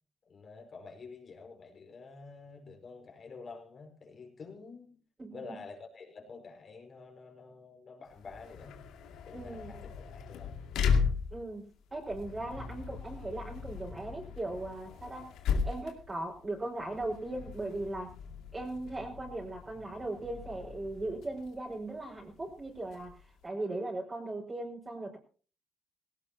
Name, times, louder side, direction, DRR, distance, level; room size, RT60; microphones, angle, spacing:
voice 1, 0.2-5.0 5.3-8.8 9.3-10.6, left 4 dB, 45° left, 3 dB, 5.2 m, -49 dB
sound 1, 8.1-23.4, left 6 dB, 85° left, 2.3 m, -37 dB
voice 2, 9.3-9.8 11.3-15.3 15.6-18.1 18.5-23.2 23.4-25.2, right 2 dB, 25° right, -3 dB, 4.8 m, -38 dB
18.0 x 18.0 x 2.8 m, 0.38 s
cardioid pair, 90°, 0 cm